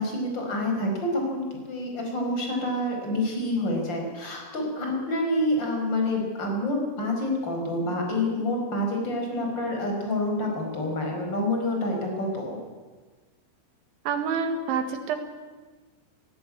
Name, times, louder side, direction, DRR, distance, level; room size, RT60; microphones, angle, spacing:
voice 1, 0.0-12.6, left 1 dB, 25° left, 1 dB, 5.1 m, -28 dB
voice 2, 14.1-15.2, right 6 dB, 85° right, 7 dB, 4.2 m, -27 dB
17.5 x 17.5 x 9.6 m, 1.4 s
omnidirectional pair, 5.3 m